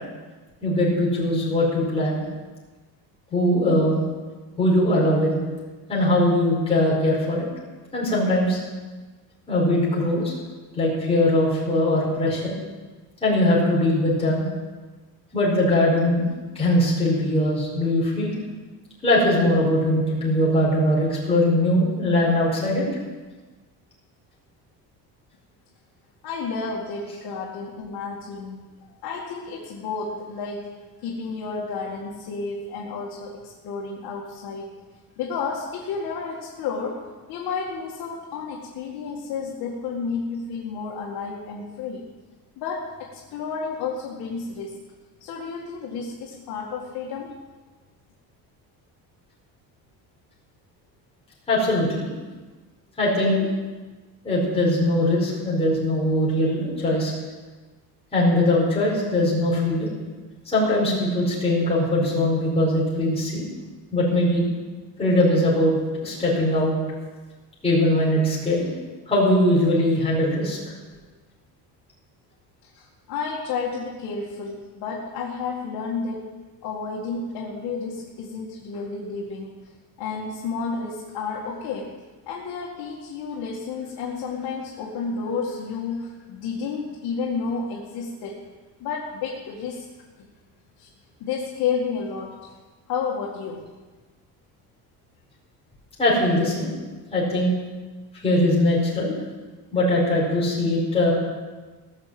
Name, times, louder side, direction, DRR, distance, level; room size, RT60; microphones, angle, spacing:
voice 1, 0.6-2.2 3.3-4.0 4.6-5.4 5.9-7.5 7.9-8.6 9.5-10.3 10.7-12.5 13.2-14.5 15.3-16.3 16.5-18.3 19.0-22.8 51.5-52.1 53.0-53.5 54.2-57.1 58.1-59.9 60.4-63.4 63.9-64.4 65.0-65.7 66.0-66.7 67.6-68.7 69.1-70.6 96.0-96.7 97.1-97.5 98.2-99.1 99.7-101.1, left 1 dB, 15° left, -6 dB, 5.1 m, -21 dB
voice 2, 26.2-28.7 29.0-30.7 31.0-34.7 35.2-37.0 37.3-42.0 42.6-44.8 45.2-47.3 72.6-76.3 76.6-79.7 80.0-81.9 82.3-88.4 88.8-89.8 90.2-90.3 90.8-90.9 91.2-92.6 92.9-93.7, left 5 dB, 70° left, -3 dB, 2.1 m, -31 dB
17.0 x 6.7 x 7.7 m, 1.3 s
cardioid pair, 155°, 38 cm